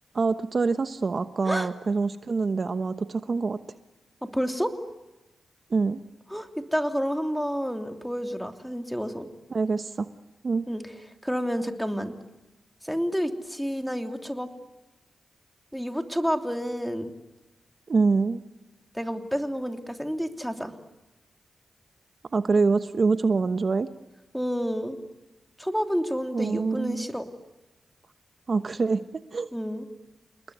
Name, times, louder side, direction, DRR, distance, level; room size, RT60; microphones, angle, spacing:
voice 1, 0.1-3.6 5.7-6.0 9.5-10.1 10.4-10.7 17.9-18.4 22.3-23.9 26.3-27.1 28.5-29.0 29.3-29.5, right 4 dB, 55° right, 11 dB, 1.1 m, -25 dB
voice 2, 4.2-4.7 6.3-9.3 10.7-10.8 11.2-12.1 12.8-14.5 15.7-17.1 18.9-20.7 24.3-25.0 25.6-27.3 29.5-29.8, equal, ahead, 5 dB, 3.1 m, -29 dB
29.5 x 20.0 x 9.5 m, 1.1 s
cardioid pair, 55°, 0 cm